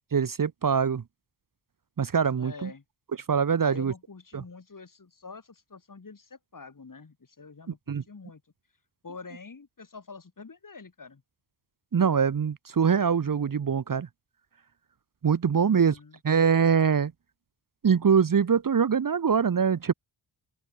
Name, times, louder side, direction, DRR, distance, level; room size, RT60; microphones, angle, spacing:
voice 1, 0.1-1.0 2.0-2.7 3.3-3.9 4.3-4.4 7.9-8.0 11.9-14.1 15.2-16.0 16.2-17.1 17.8-19.9, right 6 dB, 45° right, 1.1 m, -23 dB
voice 2, 2.4-2.8 3.6-8.4 9.0-11.2 15.6-16.2, left 4 dB, 45° left, 4.9 m, -46 dB
open air
cardioid pair, 75°, 46 cm